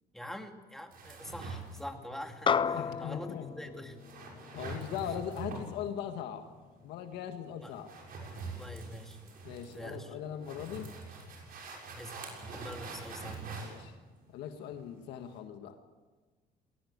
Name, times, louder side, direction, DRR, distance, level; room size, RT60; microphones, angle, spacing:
voice 1, 0.1-4.0 5.0-5.1 7.6-7.7 8.5-9.5 9.7-10.2 11.9-13.6, equal, ahead, 4 dB, 2.5 m, -45 dB
sound 1, 0.9-15.4, right 3 dB, 60° right, 6.7 m, -46 dB
sound 2, 2.5-7.1, left 6 dB, 30° left, 0.7 m, -35 dB
voice 2, 2.7-3.5 4.5-6.4 6.8-7.9 9.4-10.9 13.6-13.9 14.3-15.8, left 9 dB, 85° left, 6 dB, 1.7 m, -40 dB
20.5 x 18.0 x 8.2 m, 1.3 s
cardioid pair, 110°, 17 cm